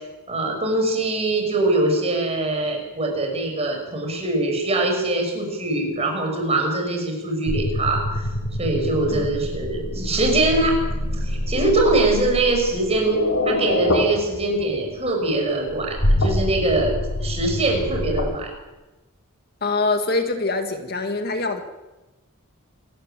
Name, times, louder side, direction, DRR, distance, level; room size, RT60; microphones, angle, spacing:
voice 1, 0.3-8.3 8.6-10.7 11.1-18.5, right 2 dB, 30° right, 2 dB, 5.7 m, -23 dB
sound 1, 7.5-14.7 15.7-18.2, left 1 dB, 80° left, 5.8 m, -25 dB
voice 2, 19.6-21.6, left 3 dB, 50° left, 6 dB, 2.0 m, -24 dB
28.0 x 14.0 x 8.9 m, 1.1 s
head